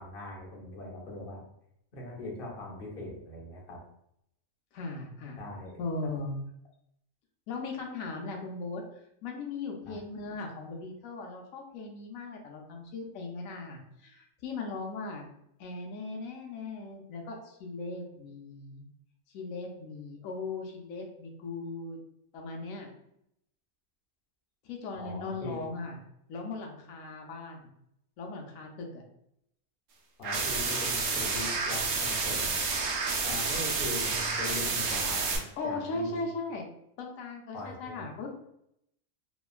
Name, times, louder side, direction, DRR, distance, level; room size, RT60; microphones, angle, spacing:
voice 1, 0.0-1.4 1.9-3.8 5.4-5.7 9.9-10.0 24.9-25.7 30.2-32.6 33.2-36.2 37.5-38.0, left 2 dB, 50° left, -2 dB, 0.8 m, -41 dB
voice 2, 4.7-5.4 5.8-6.4 7.5-8.8 9.2-15.3 15.6-18.8 19.3-22.0 22.3-22.9 24.6-26.0 26.3-27.7 28.2-29.0 35.6-36.6 37.0-38.3, left 3 dB, 80° left, 1 dB, 1.0 m, -38 dB
sound 1, 30.2-35.4, right 4 dB, 70° right, 0.9 m, -30 dB
3.0 x 2.2 x 2.4 m, 0.76 s
omnidirectional pair, 1.4 m